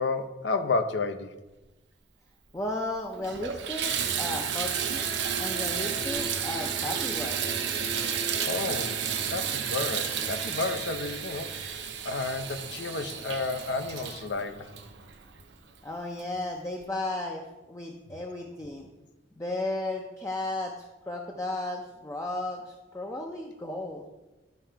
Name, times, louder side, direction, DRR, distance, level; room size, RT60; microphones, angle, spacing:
voice 1, 0.0-1.4 8.4-14.8, left 3 dB, 70° left, 9 dB, 0.6 m, -31 dB
voice 2, 2.5-5.1 5.4-7.5 15.8-18.9 19.4-24.0, left 2 dB, 15° left, 1 dB, 0.5 m, -34 dB
Water tap faucet / Bathtub (filling or washing), 2.6-2.7 3.1-15.5 16.2-16.3 16.8-16.9, right 7 dB, 70° right, 0.7 m, -32 dB
11.0 x 3.7 x 4.5 m, 1.1 s
head